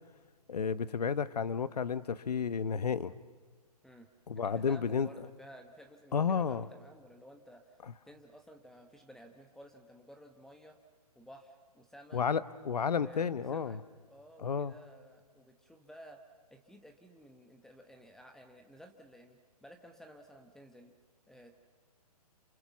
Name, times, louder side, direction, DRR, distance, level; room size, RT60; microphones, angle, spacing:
voice 1, 0.5-3.1 4.3-5.1 6.1-6.7 12.1-13.8 14.4-14.7, left 6 dB, 80° left, 16 dB, 1.0 m, -31 dB
voice 2, 4.4-7.8 8.1-10.8 11.1-12.2 12.9-13.8 14.1-16.2 16.5-20.9 21.3-21.5, equal, ahead, 5 dB, 1.2 m, -54 dB
29.0 x 28.0 x 7.1 m, 1.4 s
hypercardioid pair, 140°, 20 cm